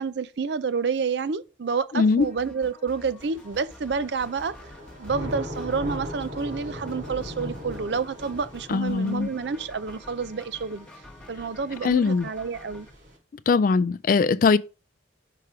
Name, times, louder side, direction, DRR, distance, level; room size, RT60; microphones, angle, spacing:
voice 1, 0.0-4.5 5.0-10.9 11.3-12.9, right 5 dB, 60° right, 0.5 m, -29 dB
voice 2, 1.9-2.3 8.7-9.3 11.8-12.3 13.5-14.6, left 4 dB, 45° left, 0.3 m, -21 dB
sound 1, 2.2-12.9, left 1 dB, 5° left, 1.0 m, -48 dB
Thunder / Rain, 3.2-13.1, left 1 dB, 85° right, 3.4 m, -40 dB
5.8 x 5.1 x 4.9 m
head